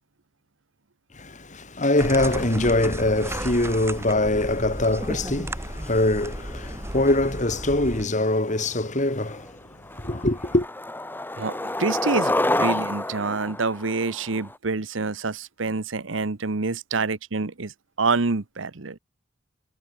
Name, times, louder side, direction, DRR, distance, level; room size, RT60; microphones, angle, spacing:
voice 1, 1.1-9.6 9.9-10.7, left 1 dB, 40° left, 3.3 m, -23 dB
sound 1, 2.0-8.1, right 1 dB, 15° right, 4.6 m, -34 dB
Skateboard, 8.8-8.9 9.3-9.6 9.9-14.5, left 1 dB, 10° left, 1.7 m, -28 dB
voice 2, 11.4-19.0, right 4 dB, 85° right, 1.1 m, -27 dB
head